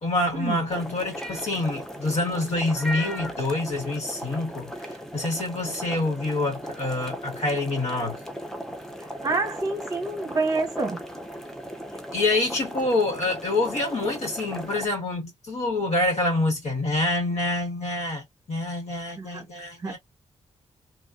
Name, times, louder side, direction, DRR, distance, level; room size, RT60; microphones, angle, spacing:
voice 1, 0.0-8.2 12.1-20.0, left 2 dB, 65° left, 1.8 m, -27 dB
sound 1, 0.7-14.9, equal, 5° left, 0.5 m, -37 dB
voice 2, 9.2-11.0 19.2-19.5 19.8-20.0, right 3 dB, 30° right, 1.2 m, -27 dB
2.9 x 2.5 x 2.2 m
wide cardioid pair, 155°, 12 cm